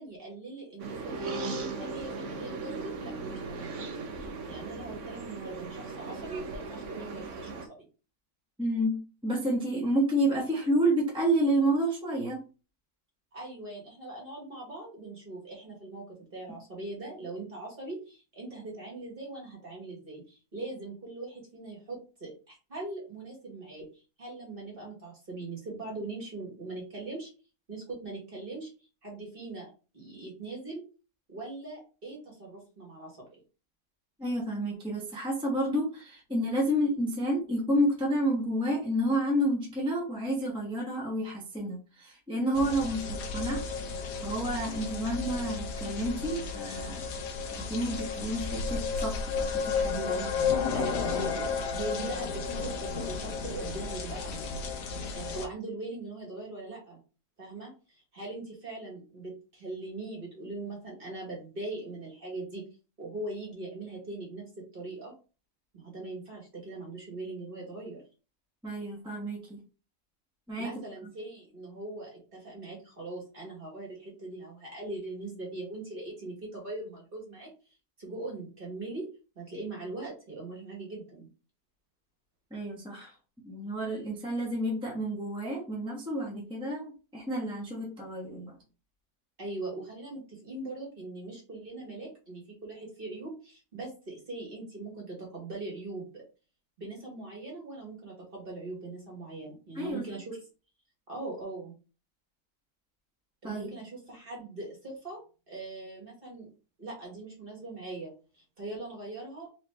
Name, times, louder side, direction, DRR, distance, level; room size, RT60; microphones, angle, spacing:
voice 1, 0.0-3.9 4.2-7.7 13.3-16.0 16.3-27.3 27.7-28.7 29.0-30.8 31.3-33.4 50.0-54.4 55.1-57.0 57.4-62.7 63.0-65.1 65.7-68.0 70.6-77.5 78.0-79.1 79.4-81.3 89.4-96.2 96.8-100.4 101.1-101.7 103.4-105.2 105.5-106.5 106.8-109.5, right 2 dB, 35° right, -3 dB, 2.0 m, -41 dB
sound 1, 0.8-7.7, right 3 dB, 60° right, 0.9 m, -38 dB
voice 2, 8.6-12.4 34.2-43.6 44.2-47.0 47.5-50.1 68.6-69.6 70.5-70.7 82.5-83.1 83.4-88.5 99.7-100.1 103.4-103.7, right 1 dB, 5° right, -3 dB, 1.0 m, -30 dB
sound 2, 42.5-55.5, left 5 dB, 85° left, 1.3 m, -33 dB
4.2 x 3.0 x 3.4 m, 0.34 s
omnidirectional pair, 1.7 m